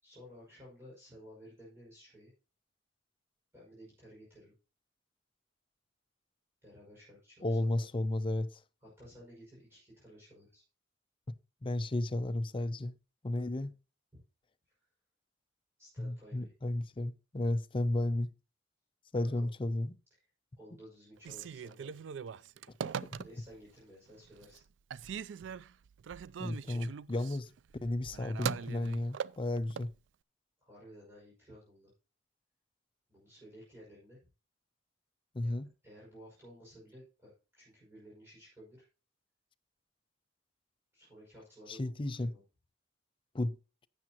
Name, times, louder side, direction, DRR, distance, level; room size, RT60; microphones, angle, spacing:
voice 1, 0.0-2.3 3.5-4.5 6.6-7.9 8.8-10.6 14.1-14.2 15.8-16.5 19.1-19.5 20.6-22.0 23.2-24.6 26.6-26.9 30.6-31.9 33.1-34.2 35.4-38.8 40.9-41.9 42.2-42.4, equal, 15° right, 5.9 m, -55 dB
voice 2, 7.4-8.6 11.3-11.4 11.6-12.9 13.2-13.8 16.0-18.3 19.1-20.0 26.4-27.5 27.8-29.9 35.3-35.7 41.7-42.3 43.3-43.6, left 1 dB, 30° left, 0.5 m, -33 dB
Telephone, 21.2-23.7 24.1-24.6 24.9-29.9, right 7 dB, 75° right, 0.4 m, -41 dB
12.0 x 8.4 x 2.9 m
head